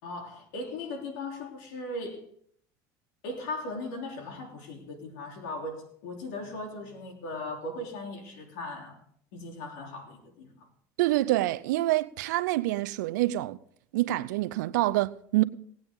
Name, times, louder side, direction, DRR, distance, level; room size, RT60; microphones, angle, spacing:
voice 1, 0.0-2.2 3.2-9.0 9.3-10.7, left 2 dB, 80° left, 3.2 m, -38 dB
voice 2, 11.0-13.6 13.9-15.4, right 17 dB, 85° right, 0.5 m, -26 dB
18.5 x 8.7 x 3.7 m
supercardioid pair, 90°, 9 cm